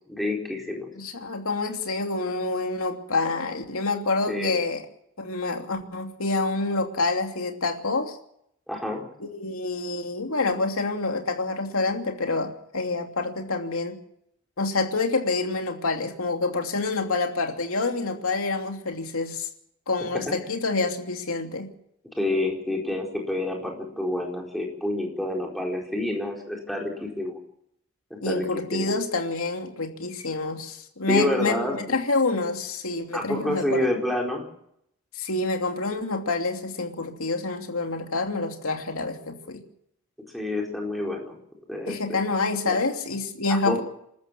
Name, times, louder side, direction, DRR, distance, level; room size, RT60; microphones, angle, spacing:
voice 1, 0.1-0.9 4.3-4.6 8.7-9.0 20.3-20.4 22.2-27.4 28.1-28.9 31.1-32.0 33.1-34.4 40.3-41.4 41.7-42.2 42.6-42.8 43.6-43.8, left 1 dB, ahead, 0 dB, 4.6 m, -28 dB
voice 2, 0.9-4.8 5.2-8.2 9.2-14.0 14.6-19.5 19.9-21.7 28.2-33.9 35.1-39.6 41.9-43.8, left 3 dB, 85° left, 4 dB, 2.9 m, -27 dB
26.5 x 13.5 x 7.6 m, 0.73 s
head